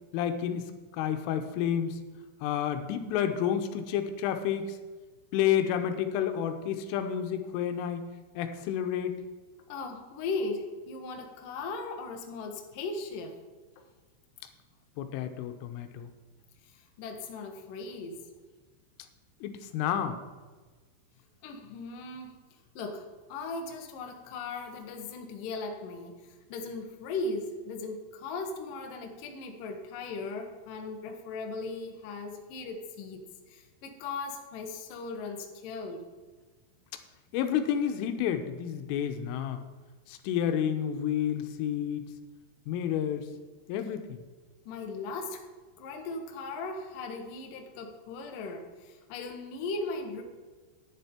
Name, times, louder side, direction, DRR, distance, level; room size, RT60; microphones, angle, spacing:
voice 1, 0.1-2.0 2.4-4.8 5.3-8.0 8.4-9.2 15.0-16.1 19.4-20.2 37.3-39.6 40.1-42.1 42.7-43.3 43.7-44.2, left 9 dB, 90° left, 8 dB, 3.4 m, -30 dB
voice 2, 9.7-13.4 16.7-18.3 21.4-22.4 22.8-36.1 44.7-45.4 45.8-50.2, left 3 dB, 70° left, 3 dB, 2.1 m, -38 dB
10.5 x 10.5 x 4.4 m, 1.4 s
omnidirectional pair, 5.6 m